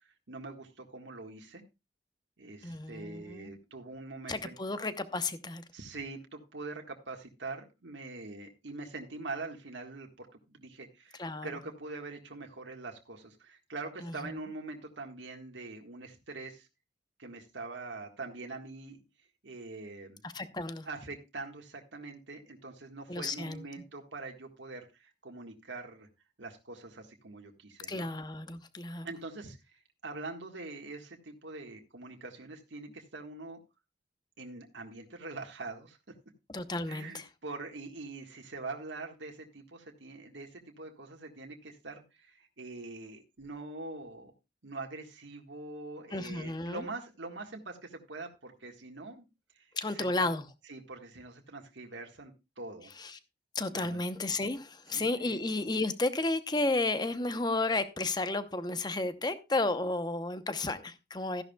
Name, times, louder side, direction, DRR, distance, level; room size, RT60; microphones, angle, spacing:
voice 1, 0.3-1.6 2.4-4.5 5.7-16.7 17.2-19.0 19.4-20.2 20.8-26.1 26.4-28.1 29.0-33.6 34.4-36.0 36.9-44.3 44.6-49.2 49.5-50.3 50.7-52.3 52.6-52.9 53.7-54.0 54.9-55.1, right 3 dB, 90° right, 1.7 m, -44 dB
voice 2, 2.6-3.6 4.3-5.6 11.2-11.5 14.0-14.1 20.2-20.9 23.1-23.6 27.9-29.1 36.5-37.3 46.1-46.8 49.7-50.4 53.0-53.2 53.5-61.4, left 2 dB, 25° left, 0.8 m, -32 dB
14.0 x 11.0 x 2.3 m
head